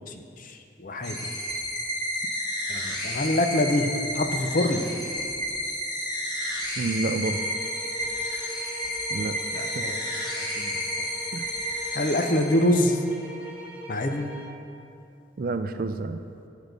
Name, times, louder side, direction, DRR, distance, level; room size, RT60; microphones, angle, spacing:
voice 1, 0.1-1.2 2.7-4.9 9.5-10.0 10.4-11.1 11.9-13.0 13.9-14.3, left 1 dB, 45° left, 6 dB, 0.6 m, -26 dB
sound 1, 1.0-12.9, equal, 20° left, 1.4 m, -31 dB
voice 2, 6.8-7.4 9.1-9.8 11.3-11.5 15.4-16.2, right 3 dB, 50° right, 9 dB, 0.4 m, -29 dB
sound 2, 7.2-14.6, right 1 dB, 10° right, 1.0 m, -41 dB
10.0 x 6.2 x 5.2 m, 2.6 s
head